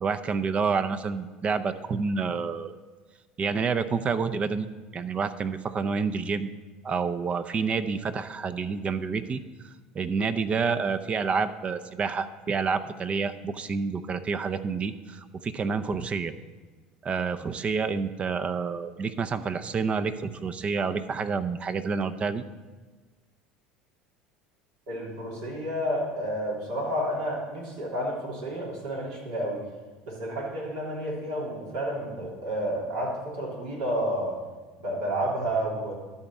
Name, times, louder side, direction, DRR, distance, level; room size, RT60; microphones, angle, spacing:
voice 1, 0.0-2.7 3.4-4.7 4.9-6.5 6.8-9.4 9.9-16.3 17.0-22.4, right 5 dB, 35° right, 12 dB, 0.6 m, -28 dB
voice 2, 24.9-29.6 30.1-34.3 34.8-35.9, equal, 75° right, -4 dB, 3.2 m, -30 dB
12.5 x 4.3 x 7.1 m, 1.3 s
hypercardioid pair, 85°, 4 cm